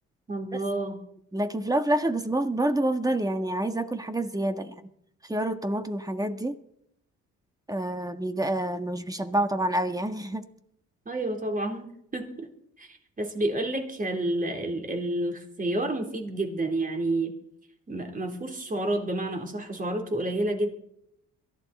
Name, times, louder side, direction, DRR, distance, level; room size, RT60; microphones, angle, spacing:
voice 1, 0.3-1.0 11.1-12.5 12.8-17.3 17.9-20.7, right 1 dB, 25° right, 3 dB, 3.7 m, -30 dB
voice 2, 1.3-4.7 5.2-6.6 7.7-10.4, right 1 dB, 10° right, 8 dB, 1.5 m, -27 dB
22.5 x 14.5 x 4.3 m, 0.74 s
cardioid pair, 90°, 30 cm